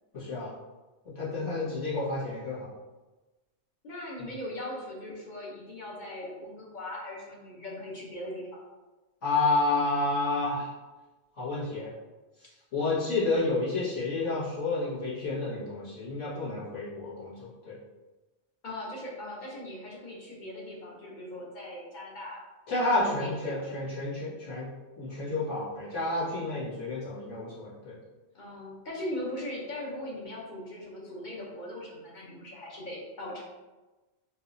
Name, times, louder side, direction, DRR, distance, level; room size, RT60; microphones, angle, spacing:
voice 1, 0.1-0.5 1.2-2.7 9.2-10.7 11.3-11.9 12.7-17.8 22.7-24.7 25.0-28.0, left 2 dB, 80° left, -11 dB, 1.8 m, -30 dB
voice 2, 3.8-8.5 18.6-22.4 23.0-23.7 28.3-33.4, left 1 dB, 45° left, -4 dB, 0.9 m, -39 dB
3.8 x 3.0 x 2.6 m, 1.2 s
omnidirectional pair, 1.2 m